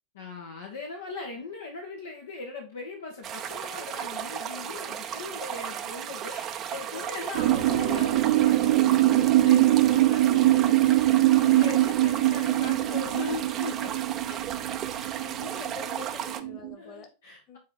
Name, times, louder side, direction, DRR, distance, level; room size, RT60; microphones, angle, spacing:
voice 1, 0.1-13.9 16.3-16.4 16.7-17.6, left 4 dB, 65° left, -1 dB, 1.8 m, -40 dB
sound 1, 3.2-16.4, right 9 dB, 30° right, 0.8 m, -35 dB
sound 2, 7.3-16.7, right 15 dB, 55° right, 1.0 m, -23 dB
voice 2, 11.2-11.7 14.3-14.4 14.8-17.1 17.5-17.6, left 4 dB, 30° left, 7 dB, 2.0 m, -46 dB
8.3 x 4.5 x 4.5 m, 0.31 s
figure-of-eight pair, 90°, 0 cm